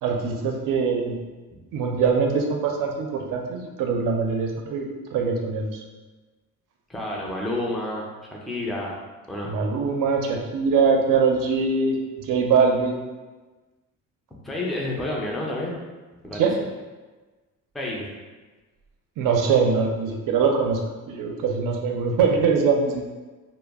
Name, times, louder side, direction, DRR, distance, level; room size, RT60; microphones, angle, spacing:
voice 1, 0.0-1.2 1.7-5.8 9.4-13.0 16.3-16.6 19.2-20.8 21.1-23.0, right 5 dB, 70° right, 2 dB, 0.5 m, -23 dB
voice 2, 6.9-9.0 9.3-9.5 14.4-15.8 16.2-16.5 17.7-18.1, left 1 dB, ahead, -3 dB, 0.5 m, -30 dB
2.2 x 2.0 x 3.4 m, 1.3 s
cardioid pair, 90°, 33 cm